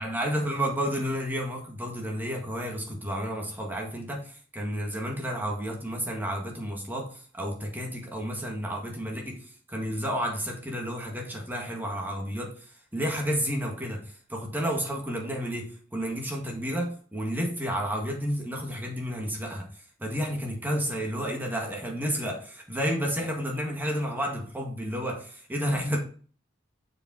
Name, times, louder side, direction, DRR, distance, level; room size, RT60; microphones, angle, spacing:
voice 1, 0.0-19.7 20.0-26.0, equal, 10° right, 1.7 m, -31 dB
6.6 x 5.1 x 4.7 m
head